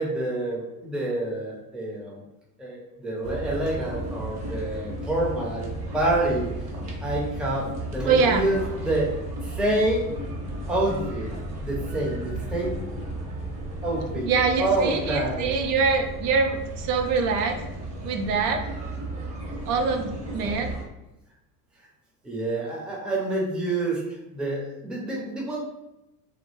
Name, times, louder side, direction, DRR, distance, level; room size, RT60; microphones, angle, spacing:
voice 1, 0.0-2.2 2.6-6.5 7.0-9.1 9.4-10.0 10.7-11.3 11.6-12.8 13.8-14.3 14.6-15.5 22.2-24.0 24.3-25.6, right 1 dB, ahead, -4 dB, 0.5 m, -27 dB
sound 1, 3.2-20.8, right 1 dB, 35° right, 0.9 m, -34 dB
voice 2, 8.0-8.4 14.2-17.6 18.0-18.6 19.6-20.7, right 5 dB, 75° right, 4 dB, 0.6 m, -24 dB
2.2 x 2.0 x 3.0 m, 0.94 s
hypercardioid pair, 90°, 47 cm